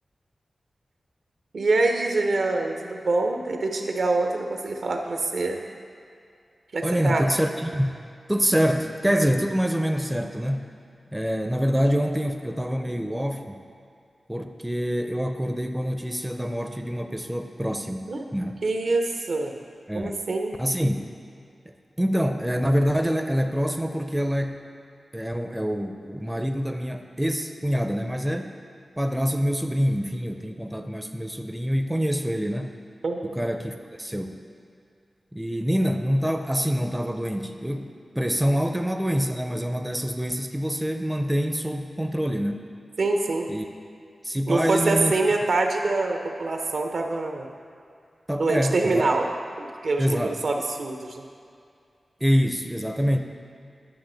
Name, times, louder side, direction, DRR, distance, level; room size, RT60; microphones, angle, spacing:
voice 1, 1.5-5.6 6.7-7.2 18.1-18.3 18.6-19.6 19.9-20.6 33.0-33.3 43.0-43.5 44.5-47.5 48.4-49.3 49.6-51.2, right 3 dB, 75° right, 3 dB, 0.7 m, -25 dB
voice 2, 6.8-7.9 8.3-10.7 11.1-13.6 14.3-18.6 19.9-20.1 20.6-21.0 22.0-24.6 25.1-28.5 29.0-32.8 33.2-34.4 35.3-42.6 43.5-43.7 44.2-45.1 48.3-49.0 50.0-50.4 52.2-53.2, equal, 10° right, 5 dB, 0.4 m, -26 dB
10.5 x 5.9 x 3.9 m, 2.4 s
wide cardioid pair, 95°, 0 cm